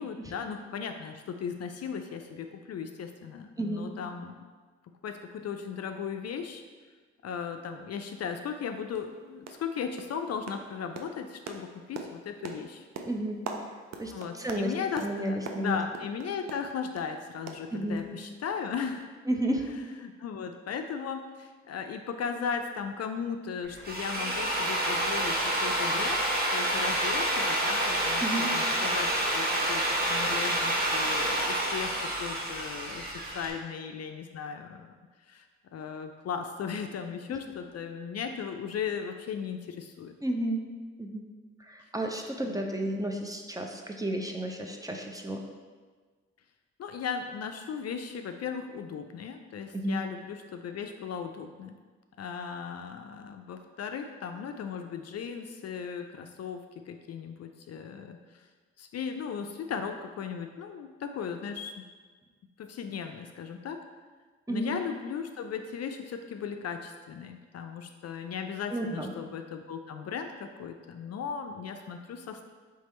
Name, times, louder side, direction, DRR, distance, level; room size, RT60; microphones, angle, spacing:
voice 1, 0.0-4.4 5.0-6.6 7.2-12.9 14.1-19.1 20.0-26.2 26.5-28.3 28.5-33.1 33.3-35.0 35.3-35.5 35.7-40.1 42.4-42.6 46.8-51.8 52.2-58.4 58.8-61.8 62.6-63.8 64.5-72.5, left 6 dB, 55° left, 6 dB, 0.4 m, -37 dB
voice 2, 3.6-3.9 13.0-13.5 14.0-14.7 15.0-15.8 17.7-18.1 19.3-19.6 28.2-28.5 40.2-40.6 41.0-41.2 41.6-45.4 49.7-50.0 64.5-64.8 68.7-69.1, right 1 dB, 10° right, 2 dB, 0.6 m, -32 dB
sound 1, 8.0-8.1 8.5-8.6 8.9-9.2 9.5-9.7 10.0-17.1 17.5-18.2 18.5-18.6 19.0-19.1, right 4 dB, 60° right, 0.5 m, -43 dB
Drill, 23.7-33.5, right 1 dB, 30° right, 1.0 m, -28 dB
3.4 x 3.3 x 4.2 m, 1.4 s
supercardioid pair, 45°, 31 cm